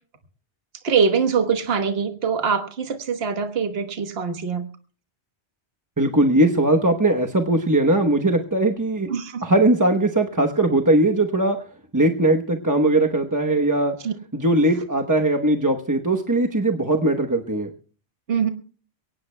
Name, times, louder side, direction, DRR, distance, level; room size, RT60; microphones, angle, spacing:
voice 1, 0.8-4.7 9.1-9.4 14.0-14.1 18.3-18.5, right 6 dB, 60° right, 6 dB, 1.4 m, -23 dB
voice 2, 6.0-9.1 9.4-11.6 11.9-13.9 14.3-17.7, right 1 dB, 20° right, 2 dB, 0.9 m, -20 dB
23.5 x 18.0 x 2.2 m, 0.40 s
omnidirectional pair, 1.2 m